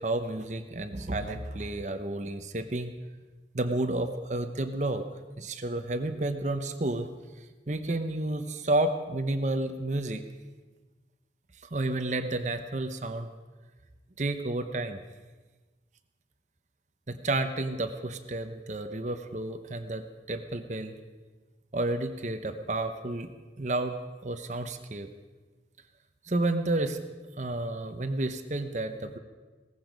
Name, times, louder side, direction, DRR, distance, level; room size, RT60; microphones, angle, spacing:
voice 1, 0.0-3.0 3.5-5.0 5.4-7.1 7.7-10.2 11.7-13.3 14.2-15.0 17.1-20.9 21.7-23.3 23.6-25.1 26.3-27.0 27.4-29.2, right 2 dB, 40° right, 8 dB, 0.9 m, -31 dB
18.0 x 15.0 x 5.2 m, 1.3 s
head